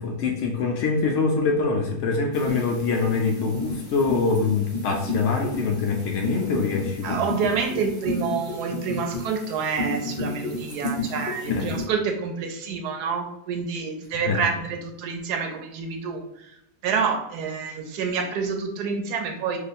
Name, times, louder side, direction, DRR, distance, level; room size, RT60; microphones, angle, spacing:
voice 1, 0.0-7.5 11.6-11.7 14.3-14.4, left 4 dB, 80° left, 1 dB, 0.6 m, -24 dB
sound 1, 2.3-11.8, left 2 dB, 5° right, 0.5 m, -32 dB
voice 2, 7.0-16.2 16.8-19.6, right 5 dB, 75° right, 4 dB, 1.1 m, -28 dB
3.0 x 2.3 x 4.1 m, 0.77 s
omnidirectional pair, 1.8 m